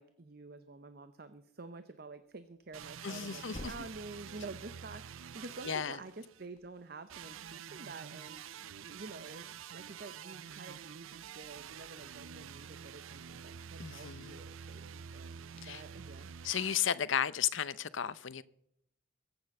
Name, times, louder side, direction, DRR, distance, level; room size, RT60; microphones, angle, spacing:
voice 1, 0.0-16.4, right 3 dB, 50° right, 0.7 m, -49 dB
Thump thud, 2.6-6.7, left 1 dB, 35° left, 0.9 m, -53 dB
sound 1, 2.7-6.5 7.1-16.8, right 8 dB, 85° right, 0.5 m, -48 dB
voice 2, 3.0-3.7 5.6-6.0 13.8-14.4 15.6-15.8 16.4-18.4, left 9 dB, 70° left, 0.6 m, -34 dB
22.0 x 8.8 x 5.4 m
head